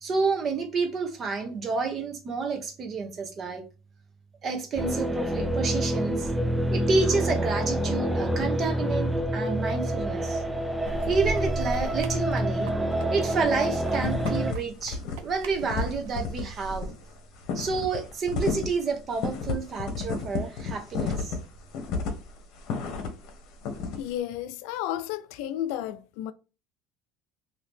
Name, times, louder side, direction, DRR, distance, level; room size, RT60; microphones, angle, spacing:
voice 1, 0.0-3.6 4.4-6.3 6.7-10.4 11.1-12.8 13.1-16.9 17.5-21.4, right 4 dB, 30° right, 0.8 m, -29 dB
sound 1, 4.8-14.5, right 1 dB, 5° right, 0.4 m, -27 dB
sound 2, 10.8-16.9, equal, 90° right, 0.5 m, -39 dB
sound 3, 13.4-13.6 13.9-14.6 14.8-15.1 15.4-23.3 23.6-24.0, left 5 dB, 60° left, 0.9 m, -31 dB
voice 2, 24.0-26.3, left 12 dB, 75° left, 0.3 m, -32 dB
2.8 x 2.7 x 3.5 m
cardioid pair, 145°, 0 cm